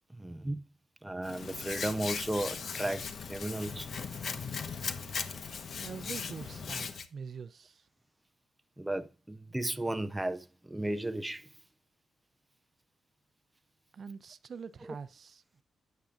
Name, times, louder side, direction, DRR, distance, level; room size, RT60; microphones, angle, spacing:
voice 1, 0.1-0.7 1.0-3.9 8.8-11.5 14.8-14.9, right 1 dB, 10° right, 0.7 m, -35 dB
Hands, 1.2-7.1, left 5 dB, 55° left, 1.1 m, -38 dB
voice 2, 5.8-7.9 13.9-15.6, right 6 dB, 45° right, 0.6 m, -44 dB
13.0 x 9.2 x 2.5 m
cardioid pair, 125°, 0 cm